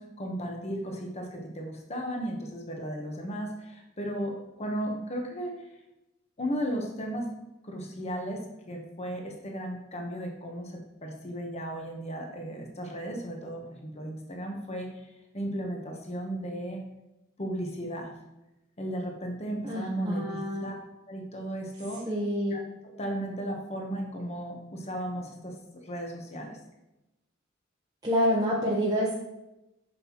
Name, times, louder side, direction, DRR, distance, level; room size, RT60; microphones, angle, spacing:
voice 1, 0.0-5.7 6.4-7.3 7.6-16.8 17.4-18.1 18.8-20.7 21.1-22.1 22.5-25.6 25.8-26.5, right 1 dB, 35° left, 1 dB, 1.2 m, -35 dB
voice 2, 19.6-20.7 22.1-22.5 28.0-29.1, equal, 20° right, -5 dB, 0.9 m, -27 dB
7.5 x 6.1 x 3.0 m, 0.93 s
head